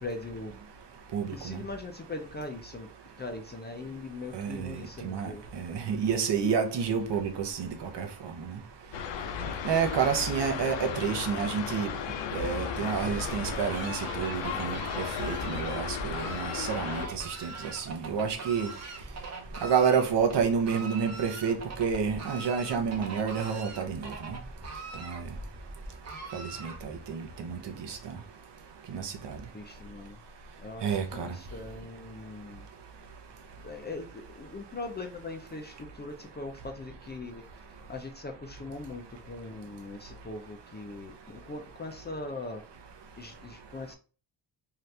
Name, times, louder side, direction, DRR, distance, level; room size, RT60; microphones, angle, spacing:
voice 1, 0.0-0.6 1.3-2.9 3.2-5.5 9.4-9.6 20.3-20.4 29.5-30.2 30.6-32.7 33.6-37.6 37.9-42.6 43.2-44.0, left 2 dB, 25° left, 0.3 m, -41 dB
voice 2, 1.1-1.6 4.3-5.3 5.6-7.7 8.0-8.1 9.6-11.9 12.3-18.7 19.6-24.0 25.0-25.2 26.3-27.6 27.9-28.0 28.9-29.1 30.8-31.3, right 6 dB, 65° right, 0.7 m, -29 dB
sound 1, 8.9-17.1, left 7 dB, 75° left, 0.5 m, -35 dB
Fowl, 12.3-27.1, right 3 dB, 35° right, 0.8 m, -42 dB
2.8 x 2.4 x 3.2 m
wide cardioid pair, 115°, 45 cm